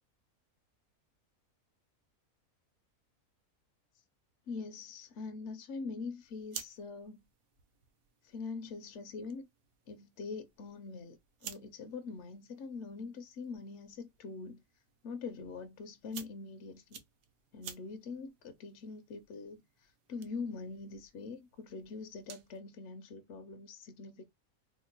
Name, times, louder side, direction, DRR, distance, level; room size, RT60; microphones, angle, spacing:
voice 1, 4.5-7.2 8.2-9.5 9.9-14.6 15.0-17.0 17.5-24.2, left 4 dB, 65° left, 0.7 m, -43 dB
sound 1, 6.2-22.6, right 8 dB, 75° right, 1.1 m, -54 dB
2.9 x 2.2 x 3.7 m
omnidirectional pair, 1.5 m